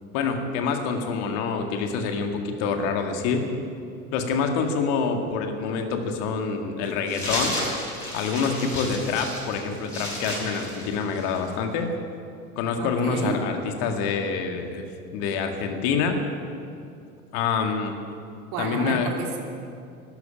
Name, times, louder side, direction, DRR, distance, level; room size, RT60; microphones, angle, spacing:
voice 1, 0.1-3.4 4.1-7.6 8.1-11.9 12.6-14.8 15.1-16.1 17.3-17.9 18.6-19.1, left 5 dB, 50° left, 5 dB, 2.1 m, -26 dB
sound 1, 7.1-11.5, left 1 dB, 85° left, 5.2 m, -32 dB
voice 2, 12.8-13.4 18.5-19.4, right 4 dB, 45° right, 1 dB, 2.9 m, -31 dB
12.5 x 12.0 x 8.9 m, 2.5 s
figure-of-eight pair, 85°, 43 cm